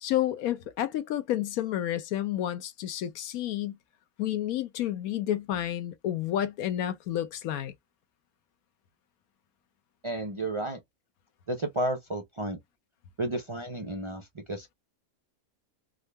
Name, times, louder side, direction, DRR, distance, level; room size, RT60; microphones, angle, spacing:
voice 1, 0.0-3.8 4.2-7.7, left 12 dB, 80° left, 1.1 m, -30 dB
voice 2, 10.0-10.8 11.5-12.6 13.2-14.7, right 1 dB, 55° right, 0.3 m, -32 dB
3.7 x 2.0 x 3.2 m
omnidirectional pair, 1.5 m